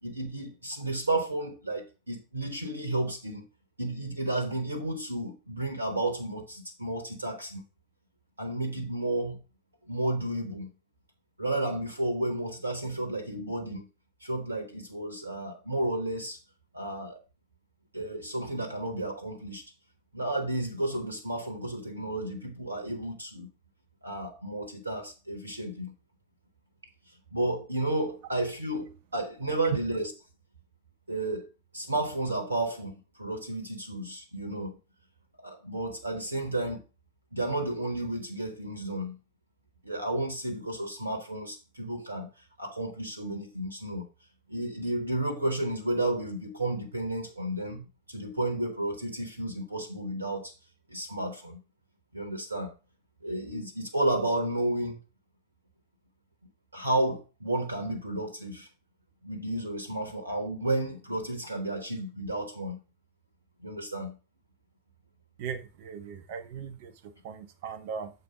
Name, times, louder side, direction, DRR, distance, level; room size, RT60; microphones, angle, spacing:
voice 1, 0.0-3.5 3.8-7.6 8.4-9.4 9.9-10.7 11.4-13.9 14.2-16.4 16.7-17.2 17.9-19.6 20.1-23.5 24.0-25.9 27.3-30.1 31.1-31.5 31.7-34.8 35.4-36.8 37.3-39.2 39.8-42.3 42.6-44.0 44.5-50.5 50.9-51.6 52.1-52.7 53.2-55.0 56.7-58.7 59.2-62.8 63.6-64.1, right 1 dB, 80° right, 1.1 m, -32 dB
voice 2, 65.4-68.1, right 6 dB, 50° right, 0.7 m, -39 dB
6.9 x 4.1 x 5.0 m
figure-of-eight pair, 90°, 0 cm